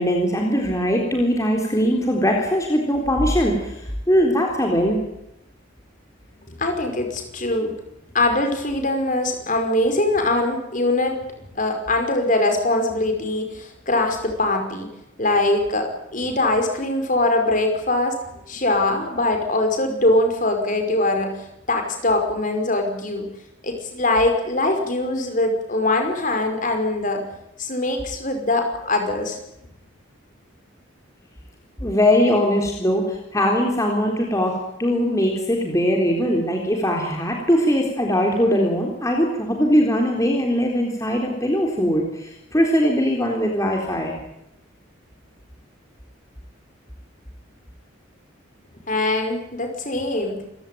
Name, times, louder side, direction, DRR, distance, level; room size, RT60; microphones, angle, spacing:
voice 1, 0.0-5.0 31.8-44.1, equal, 15° left, 1 dB, 3.8 m, -21 dB
voice 2, 6.5-7.8 8.1-11.2 11.5-14.9 15.2-21.4 21.7-23.3 23.6-27.2 27.6-29.4 48.9-50.4, left 2 dB, 40° left, 5 dB, 5.4 m, -22 dB
27.5 x 16.5 x 9.3 m, 0.85 s
head